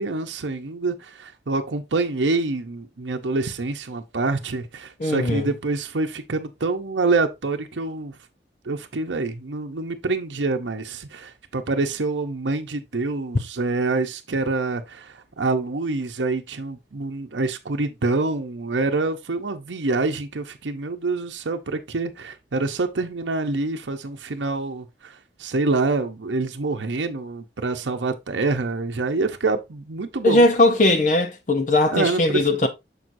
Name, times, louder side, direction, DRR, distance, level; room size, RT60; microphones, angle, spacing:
voice 1, 0.0-8.2 8.6-30.5 31.9-32.7, right 3 dB, 85° right, 0.7 m, -26 dB
voice 2, 5.0-5.5 30.2-32.7, left 2 dB, 45° left, 0.7 m, -19 dB
6.8 x 6.1 x 2.6 m
head